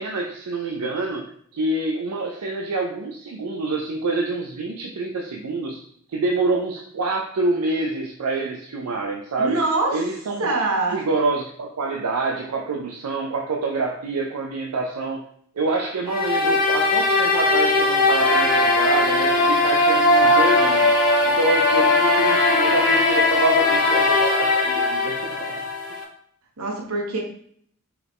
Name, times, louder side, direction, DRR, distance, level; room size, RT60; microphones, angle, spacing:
voice 1, 0.0-5.8 6.1-9.6 9.9-10.5 10.9-15.2 15.6-20.9 21.2-25.6, right 3 dB, 85° right, 1 dB, 0.5 m, -26 dB
voice 2, 9.4-10.0 10.4-11.0 26.6-27.2, right 2 dB, 70° right, -1 dB, 1.1 m, -23 dB
sound 1, 16.1-26.0, left 2 dB, 90° left, 1.1 m, -19 dB
4.6 x 3.1 x 3.5 m, 0.63 s
head